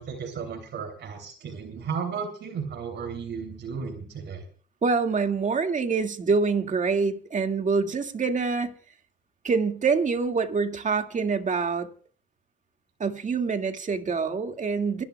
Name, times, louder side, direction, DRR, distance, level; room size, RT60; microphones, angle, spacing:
voice 1, 0.0-4.4, right 6 dB, 60° right, 3.2 m, -34 dB
voice 2, 4.8-8.7 9.4-11.9 13.0-15.0, right 4 dB, 40° right, 2.2 m, -25 dB
28.0 x 12.0 x 2.3 m
cardioid pair, 90°, 20 cm